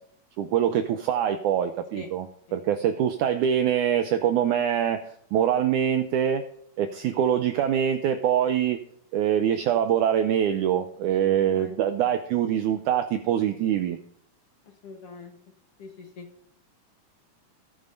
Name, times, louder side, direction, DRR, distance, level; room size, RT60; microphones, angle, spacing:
voice 1, 0.4-6.4 6.8-8.8 9.1-14.0, right 9 dB, 85° right, 8 dB, 1.8 m, -24 dB
voice 2, 11.4-11.7 14.8-15.3 15.8-16.3, left 4 dB, 60° left, 1 dB, 1.6 m, -42 dB
18.0 x 8.9 x 2.6 m, 0.70 s
omnidirectional pair, 4.2 m